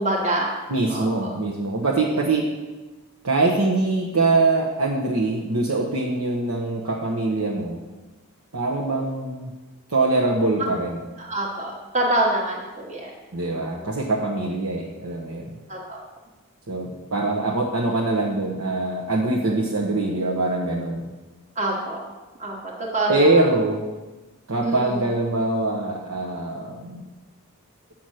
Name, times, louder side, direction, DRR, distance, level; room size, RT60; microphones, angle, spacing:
voice 1, 0.0-0.5 0.9-1.3 11.2-13.1 13.5-13.9 15.7-16.0 21.5-22.0 22.4-23.4 24.6-25.0, right 1 dB, 30° right, -2 dB, 1.3 m, -26 dB
voice 2, 0.7-2.5 3.2-7.8 8.5-9.5 9.9-11.0 13.3-15.6 16.7-21.1 23.1-23.8 24.5-27.1, right 2 dB, 80° right, -2 dB, 1.1 m, -23 dB
8.8 x 6.1 x 6.4 m, 1.2 s
head